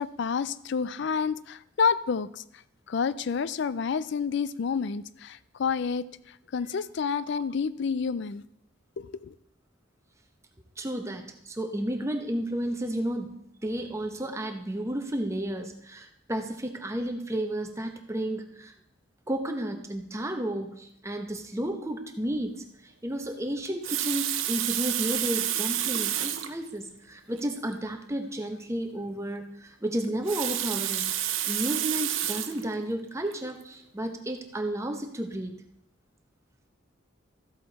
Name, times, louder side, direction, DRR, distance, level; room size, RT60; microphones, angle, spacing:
voice 1, 0.0-2.4 2.9-8.4 9.0-9.3, left 6 dB, 60° left, 17 dB, 0.4 m, -29 dB
voice 2, 10.8-18.7 19.3-22.6 22.8-31.1 31.4-35.5, right 1 dB, 15° right, 5 dB, 0.9 m, -32 dB
Water tap faucet, 23.6-26.6 27.3-27.5 27.7-27.8 30.0-32.6 33.3-33.5, right 11 dB, 80° right, 0.8 m, -29 dB
13.0 x 7.7 x 4.1 m, 0.75 s
head